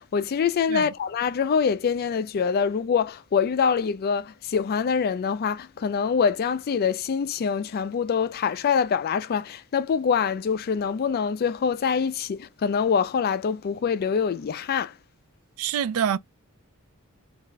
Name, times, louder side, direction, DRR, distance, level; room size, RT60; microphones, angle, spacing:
voice 1, 0.0-14.9, left 6 dB, 45° left, 0.3 m, -25 dB
voice 2, 15.6-16.2, right 8 dB, 75° right, 0.3 m, -25 dB
2.4 x 2.1 x 3.7 m
head